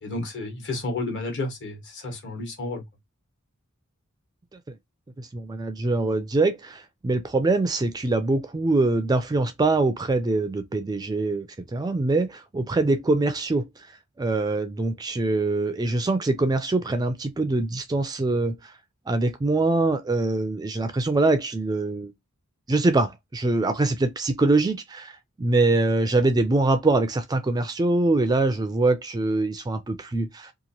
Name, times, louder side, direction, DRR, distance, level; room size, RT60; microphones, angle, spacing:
voice 1, 0.0-2.8, left 2 dB, 55° left, 1.2 m, -31 dB
voice 2, 5.2-13.6 14.2-18.6 19.1-22.1 22.7-30.5, right 2 dB, 20° right, 0.3 m, -23 dB
2.9 x 2.5 x 2.6 m
head